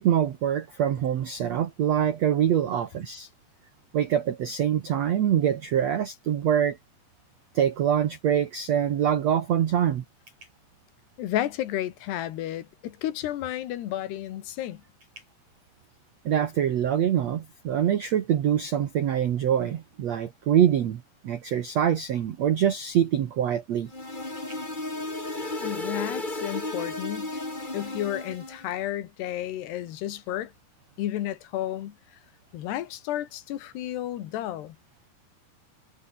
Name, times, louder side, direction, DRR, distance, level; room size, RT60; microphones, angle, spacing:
voice 1, 0.0-3.3 3.9-6.8 7.5-10.0 16.2-23.9, right 9 dB, 80° right, 1.5 m, -24 dB
voice 2, 11.2-14.8 25.6-27.3 27.7-30.5 31.0-32.0 32.5-34.8, left 12 dB, 70° left, 3.6 m, -32 dB
sound 1, 23.9-28.7, left 2 dB, 10° left, 3.2 m, -34 dB
omnidirectional pair, 5.1 m